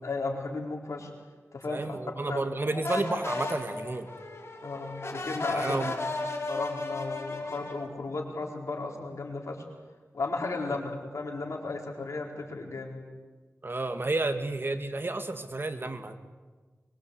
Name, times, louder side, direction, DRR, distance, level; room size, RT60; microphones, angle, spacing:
voice 1, 0.0-1.1 1.5-2.4 4.6-5.8 6.5-9.6 10.1-13.0, left 3 dB, 85° left, 1 dB, 4.4 m, -34 dB
voice 2, 1.7-4.1 5.5-5.9 13.6-16.2, right 2 dB, 45° right, 8 dB, 2.2 m, -31 dB
sound 1, 2.8-7.9, left 2 dB, 60° left, 4.9 m, -35 dB
24.0 x 23.0 x 8.4 m, 1.4 s
wide cardioid pair, 60°, 5 cm